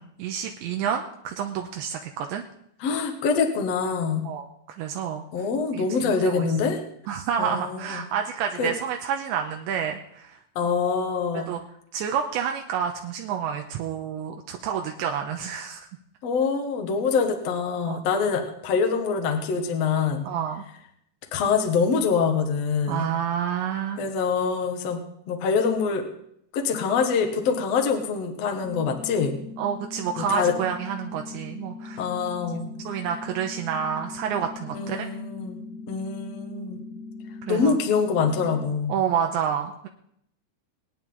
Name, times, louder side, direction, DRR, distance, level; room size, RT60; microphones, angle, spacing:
voice 1, 0.0-2.4 4.2-4.5 4.8-5.2 5.7-6.5 7.1-10.4 11.5-11.6 11.9-15.9 17.9-18.0 20.3-20.6 22.9-24.0 29.6-32.0 32.9-35.1 37.5-37.8 38.9-39.9, right 8 dB, 80° right, 3 dB, 3.0 m, -29 dB
voice 2, 2.8-4.3 5.3-6.8 7.4-8.0 8.6-8.7 10.6-11.5 16.2-20.3 21.3-23.1 24.0-25.0 25.3-26.1 26.5-29.4 30.2-30.5 32.0-32.7 34.7-35.6 35.9-36.8 37.5-38.9, left 5 dB, 60° left, 4 dB, 1.8 m, -25 dB
sound 1, 28.6-38.6, left 3 dB, 5° right, 1.8 m, -40 dB
26.0 x 9.3 x 4.0 m, 0.70 s
omnidirectional pair, 5.5 m